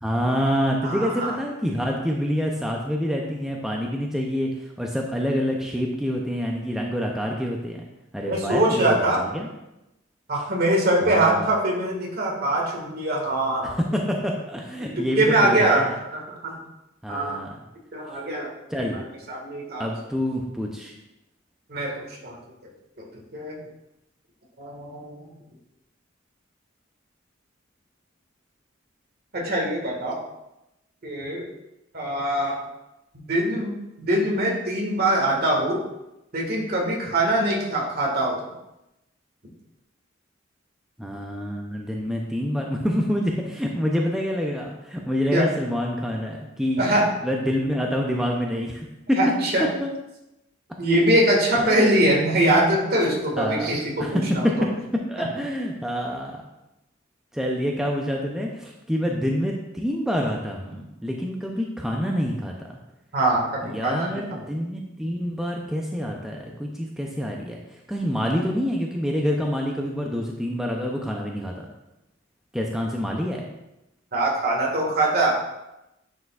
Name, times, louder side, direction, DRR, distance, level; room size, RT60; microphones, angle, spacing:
voice 1, 0.0-7.9 8.1-8.8 9.2-9.5 11.0-11.5 13.6-16.0 17.0-17.6 18.7-19.0 19.8-20.9 41.0-46.9 47.2-49.2 49.8-49.9 51.6-52.1 53.4-54.6 54.9-56.4 57.3-62.8 63.7-71.5 72.5-73.4, equal, 5° right, -1 dB, 0.5 m, -27 dB
voice 2, 0.8-1.4 8.3-9.2 10.3-13.8 14.8-15.9 16.1-16.6 17.1-17.4 17.9-18.5 18.8-19.9 21.7-22.4 23.0-23.1 23.3-23.6 24.6-25.3 29.3-30.2 31.0-31.5 31.9-32.6 33.3-35.8 36.3-38.4 45.3-45.5 46.8-47.1 49.2-49.6 50.8-54.5 63.1-64.2 74.1-75.3, right 1 dB, 50° right, -2 dB, 1.7 m, -23 dB
9.7 x 4.7 x 2.4 m, 0.91 s
head